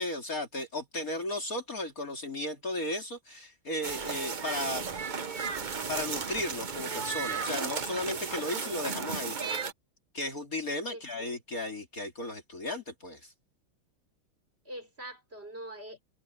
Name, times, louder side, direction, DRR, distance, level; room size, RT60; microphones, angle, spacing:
voice 1, 0.0-4.9 5.9-9.4 10.1-13.3, left 1 dB, 40° left, 3.2 m, -35 dB
sound 1, 3.8-9.7, right 5 dB, 70° right, 0.4 m, -34 dB
voice 2, 10.9-11.6 14.6-16.0, right 1 dB, 25° right, 4.8 m, -44 dB
omnidirectional pair, 2.3 m